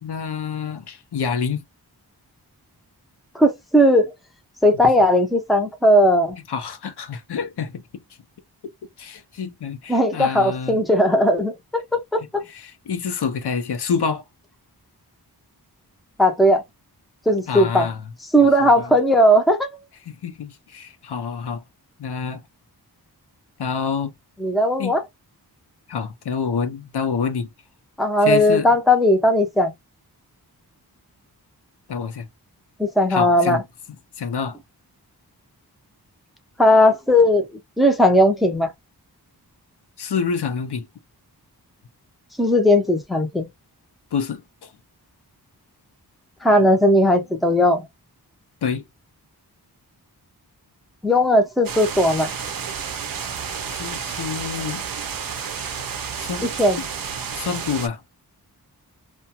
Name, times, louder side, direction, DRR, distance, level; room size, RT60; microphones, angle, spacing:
voice 1, 0.0-1.6 4.8-4.9 6.5-7.8 9.0-10.8 12.5-14.2 17.5-18.0 18.4-18.9 20.0-21.6 22.0-22.4 23.6-24.1 24.8-25.0 25.9-27.5 28.2-28.8 31.9-32.3 33.1-33.6 34.2-34.6 40.0-40.9 44.1-44.7 48.6-48.8 53.7-54.8 56.2-56.5 57.3-58.0, left 6 dB, 80° left, 0.6 m, -27 dB
voice 2, 3.3-4.1 4.6-6.4 9.9-11.8 12.1-12.5 16.2-16.6 17.3-17.9 18.3-19.7 24.4-25.0 28.0-29.7 32.8-33.6 36.6-37.4 37.8-38.7 42.4-43.5 46.4-47.8 51.0-52.3 56.6-56.8, equal, ahead, 0.6 m, -17 dB
sound 1, 51.6-57.9, right 6 dB, 60° right, 0.6 m, -31 dB
2.4 x 2.2 x 2.8 m
wide cardioid pair, 95°, 39 cm